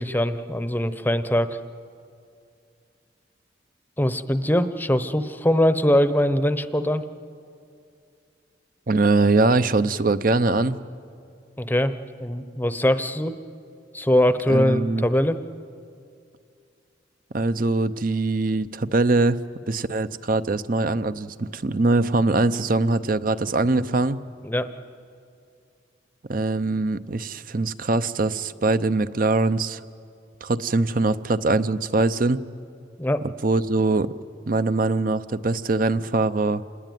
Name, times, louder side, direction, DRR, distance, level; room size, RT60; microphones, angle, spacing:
voice 1, 0.0-1.6 4.0-7.0 11.6-11.9 12.2-13.3 13.9-15.4 24.4-24.7 33.0-33.2, left 1 dB, 10° left, 11 dB, 0.8 m, -22 dB
voice 2, 8.9-10.8 14.5-15.0 17.3-19.4 19.7-24.2 26.3-29.8 30.4-32.4 33.4-34.1 34.5-36.6, right 3 dB, 45° right, 13 dB, 0.7 m, -22 dB
27.5 x 20.0 x 9.3 m, 2.4 s
head